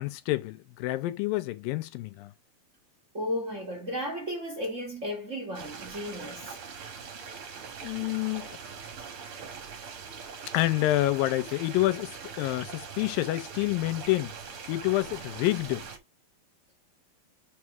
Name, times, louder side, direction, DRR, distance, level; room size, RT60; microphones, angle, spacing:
voice 1, 0.0-2.3 7.8-8.5 10.5-14.3 14.7-15.9, left 17 dB, 80° left, 2.3 m, -28 dB
voice 2, 3.1-6.6, equal, 75° right, 0.7 m, -34 dB
sound 1, 5.5-16.0, right 6 dB, 55° right, 1.6 m, -42 dB
5.4 x 4.8 x 5.8 m
omnidirectional pair, 4.2 m